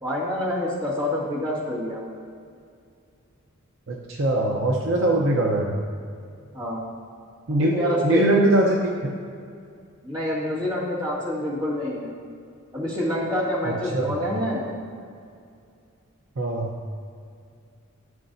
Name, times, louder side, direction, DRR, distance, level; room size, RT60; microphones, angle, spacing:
voice 1, 0.0-2.0 6.5-6.9 7.6-8.3 10.0-12.1 12.7-14.7, left 1 dB, 20° right, -7 dB, 2.2 m, -27 dB
voice 2, 3.9-5.8 7.5-9.2 13.9-14.1 16.4-16.7, right 1 dB, 60° right, -1 dB, 0.8 m, -22 dB
15.5 x 6.7 x 2.7 m, 2.3 s
head